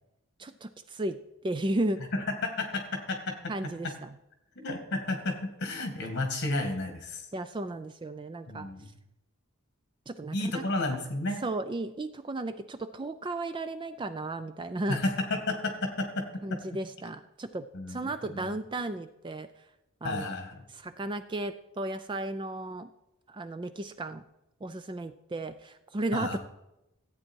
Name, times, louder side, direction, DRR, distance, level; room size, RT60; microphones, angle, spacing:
voice 1, 0.4-1.2 1.4-2.0 3.5-4.1 7.3-8.7 10.1-10.6 11.4-15.0 16.4-19.5 20.0-20.3 20.7-22.9 23.3-24.2 24.6-26.4, right 2 dB, 20° right, 11 dB, 0.3 m, -34 dB
voice 2, 2.1-3.5 3.8-3.9 4.6-7.3 8.5-8.9 10.3-11.5 14.9-16.6 17.7-18.5 20.0-20.6 26.1-26.4, left 2 dB, 50° left, 5 dB, 2.0 m, -32 dB
14.0 x 8.6 x 4.5 m, 0.91 s
head